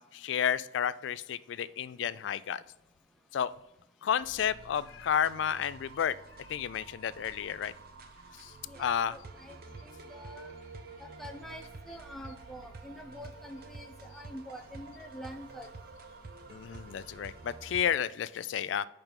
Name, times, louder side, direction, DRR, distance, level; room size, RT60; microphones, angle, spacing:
voice 1, 0.0-2.6 3.3-3.5 4.0-6.2 6.5-7.7 8.4-8.5 8.8-9.2 16.5-18.9, left 8 dB, 70° left, 16 dB, 0.3 m, -31 dB
sound 1, 4.2-17.9, right 3 dB, 50° right, 0.6 m, -49 dB
voice 2, 8.7-9.6 9.8-10.5 11.0-15.7, equal, ahead, 3 dB, 0.5 m, -46 dB
5.2 x 4.5 x 5.6 m, 0.84 s
head